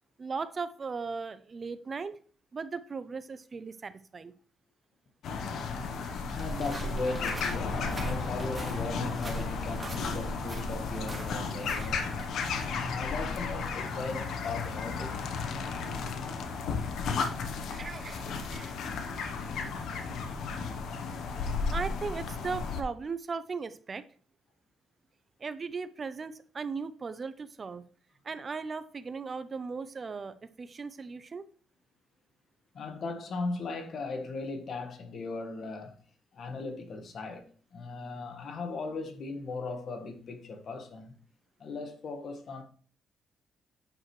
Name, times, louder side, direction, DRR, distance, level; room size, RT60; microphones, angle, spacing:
voice 1, 0.2-2.2 2.5-4.3 17.7-18.8 21.7-24.0 25.4-27.8 28.2-31.5, right 4 dB, 35° right, 0.5 m, -37 dB
sound 1, 5.2-22.8, left 5 dB, 70° left, 0.9 m, -34 dB
voice 2, 6.3-12.0 12.6-15.1 32.7-36.0 36.3-41.1 41.6-42.6, left 3 dB, 55° left, 1.5 m, -38 dB
sound 2, 6.3-12.3, right 2 dB, 20° right, 2.7 m, -39 dB
8.7 x 6.2 x 3.1 m
cardioid pair, 90°, 0 cm